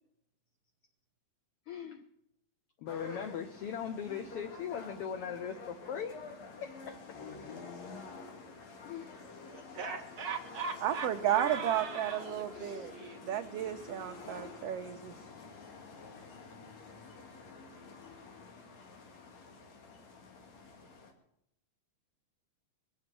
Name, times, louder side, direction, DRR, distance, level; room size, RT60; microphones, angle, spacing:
voice 1, 1.7-2.0 2.8-6.1 6.6-7.0 8.8-9.1, left 8 dB, 80° left, 8 dB, 1.3 m, -39 dB
sound 1, 2.9-21.1, left 4 dB, 65° left, 2.9 m, -49 dB
voice 2, 9.5-13.2, right 5 dB, 50° right, 3 dB, 1.9 m, -41 dB
voice 3, 10.8-12.9 13.2-15.2, right 11 dB, 85° right, 7 dB, 1.4 m, -33 dB
22.5 x 7.7 x 6.0 m, 0.78 s
omnidirectional pair, 3.5 m